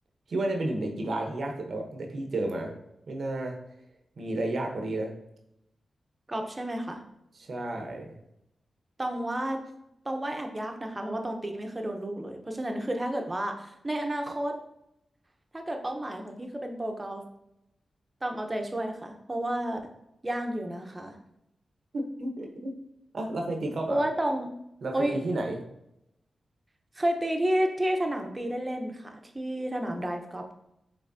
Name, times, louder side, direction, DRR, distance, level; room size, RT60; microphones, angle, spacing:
voice 1, 0.3-2.7 3.1-3.6 4.2-5.1 7.3-8.2 21.9-22.7 23.1-24.0 24.8-25.6, right 2 dB, 70° right, 2 dB, 0.9 m, -31 dB
voice 2, 6.3-7.0 9.0-9.6 10.0-14.6 15.5-17.2 18.2-19.9 20.2-21.2 23.9-24.5 24.9-25.2 27.0-30.5, right 1 dB, 30° right, 4 dB, 0.9 m, -31 dB
5.9 x 3.3 x 2.7 m, 0.82 s
cardioid pair, 55°, 0 cm